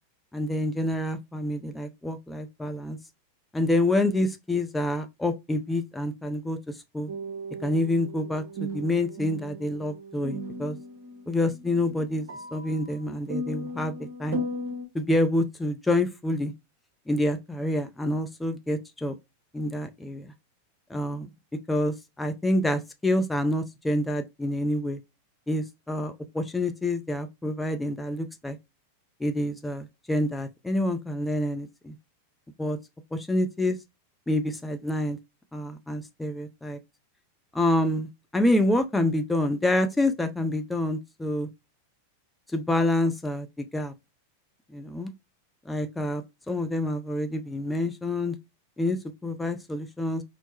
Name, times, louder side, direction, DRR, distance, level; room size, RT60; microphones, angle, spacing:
voice 1, 0.3-3.0 3.5-6.6 6.9-7.1 7.6-10.8 11.3-12.3 12.5-13.9 14.2-14.4 14.9-16.5 17.1-19.2 19.5-20.3 20.9-21.3 21.7-25.0 25.5-28.6 29.2-31.9 32.6-32.8 33.1-33.8 34.3-35.2 35.5-36.8 37.5-41.5 42.5-43.9 44.7-45.1 45.7-48.4 48.8-50.2, left 1 dB, 5° left, 0.5 m, -27 dB
sound 1, 7.1-14.9, equal, 55° right, 0.9 m, -37 dB
4.4 x 2.0 x 2.9 m
figure-of-eight pair, 90°, 0 cm